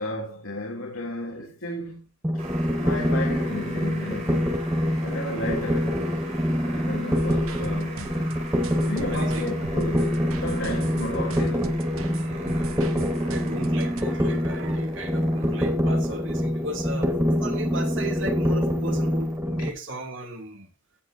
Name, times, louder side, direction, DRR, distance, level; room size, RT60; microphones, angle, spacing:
voice 1, 0.0-2.0 2.8-4.6 5.0-8.3 8.8-11.8, left 1 dB, 75° left, 3.1 m, -34 dB
sound 1, 2.2-19.7, equal, 15° right, 1.6 m, -25 dB
sound 2, 2.4-19.4, right 3 dB, 35° right, 4.4 m, -44 dB
sound 3, 7.1-14.0, right 3 dB, 85° right, 1.1 m, -39 dB
voice 2, 9.1-9.4 12.1-12.7 13.3-20.7, right 1 dB, 65° right, 3.0 m, -36 dB
16.0 x 8.1 x 2.8 m
head